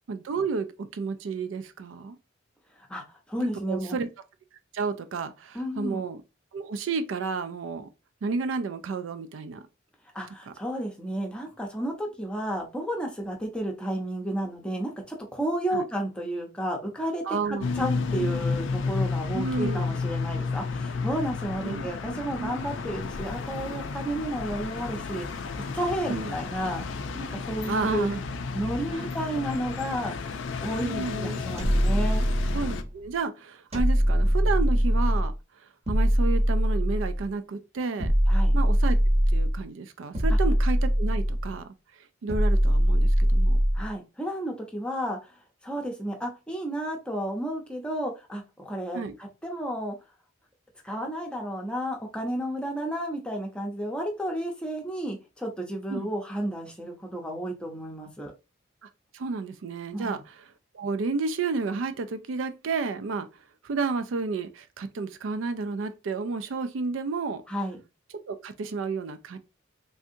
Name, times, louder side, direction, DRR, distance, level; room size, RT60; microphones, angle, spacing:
voice 1, 0.1-2.2 3.4-4.1 4.7-6.2 6.5-7.9 8.2-9.6 15.7-15.8 17.2-17.6 19.3-19.9 21.6-21.9 22.4-22.6 26.1-26.3 27.7-28.2 28.9-29.1 30.8-31.4 32.5-35.3 35.9-38.1 38.5-39.0 39.3-41.7 42.2-43.6 48.9-49.1 55.9-56.1 58.8-63.3 63.6-67.4 68.3-69.4, right 4 dB, 75° right, 0.4 m, -31 dB
voice 2, 2.8-4.0 5.5-6.0 10.1-25.4 25.7-28.1 28.5-30.1 30.6-32.2 38.3-38.5 43.7-45.4 45.6-50.0 50.8-58.3 59.9-60.2 67.5-67.8, right 1 dB, 5° left, 0.6 m, -32 dB
sound 1, 17.6-32.8, left 4 dB, 65° left, 0.4 m, -32 dB
sound 2, 31.6-32.9 33.7-35.4 35.9-37.3 38.0-39.6 40.1-41.5 42.3-43.9, equal, 30° right, 0.8 m, -22 dB
3.4 x 2.6 x 2.6 m
head